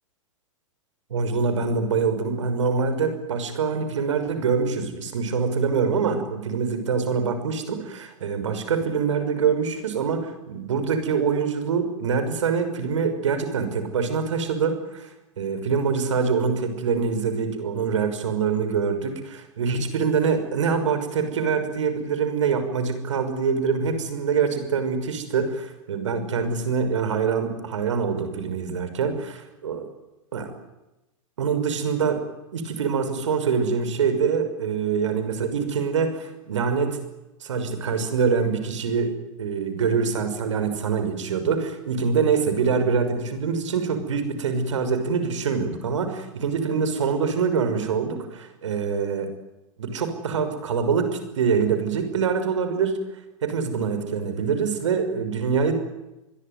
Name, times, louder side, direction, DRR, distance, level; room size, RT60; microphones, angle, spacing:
voice 1, 1.1-15.1 15.4-29.8 30.3-30.5 31.4-32.2 32.5-37.0 37.4-49.3 49.8-53.0 53.4-55.8, right 5 dB, 60° right, 9 dB, 6.2 m, -25 dB
26.5 x 22.5 x 9.8 m, 0.98 s
figure-of-eight pair, 100°, 17 cm